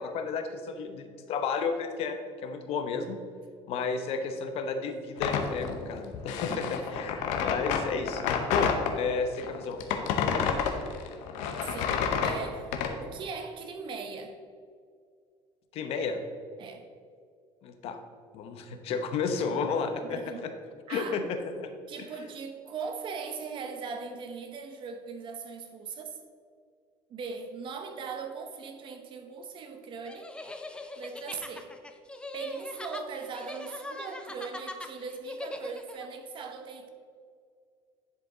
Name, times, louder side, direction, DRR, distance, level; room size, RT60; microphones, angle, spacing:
voice 1, 0.0-3.2 3.7-10.0 10.3-10.6 15.7-16.2 17.6-18.0 18.3-20.5 20.9-21.7, left 5 dB, 60° left, 7 dB, 0.9 m, -32 dB
sound 1, 5.2-8.9 9.4-12.9, left 7 dB, 85° left, 0.9 m, -29 dB
voice 2, 11.6-14.4 16.6-16.8 20.1-20.4 20.9-21.2 21.9-26.2 27.1-30.3 31.0-31.7 32.3-36.9, right 5 dB, 45° right, 6 dB, 1.0 m, -39 dB
sound 2, 30.0-36.1, left 2 dB, 10° left, 0.5 m, -41 dB
10.5 x 4.9 x 3.8 m, 2.2 s
cardioid pair, 130°, 12 cm